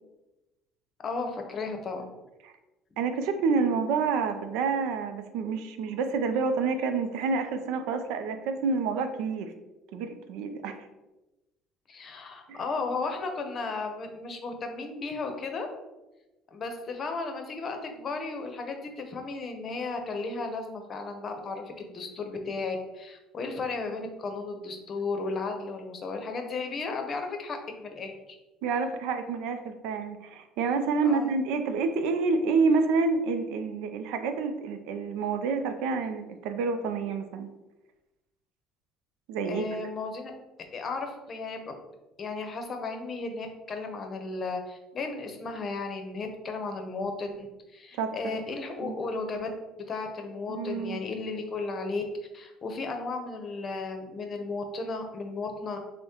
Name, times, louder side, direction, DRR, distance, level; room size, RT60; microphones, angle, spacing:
voice 1, 1.0-2.1 11.9-15.7 16.5-28.1 31.0-31.3 39.4-40.3 40.7-41.7 42.2-47.5 47.7-49.5 49.9-52.0 52.3-55.8, left 3 dB, 40° left, 5 dB, 0.7 m, -34 dB
voice 2, 3.0-9.5 9.9-10.8 12.5-12.6 28.6-37.5 39.3-39.7 48.0-48.4 48.8-48.9 50.5-51.0, right 4 dB, 80° right, 8 dB, 0.4 m, -28 dB
6.2 x 2.1 x 2.9 m, 1.0 s
supercardioid pair, 90°, 0 cm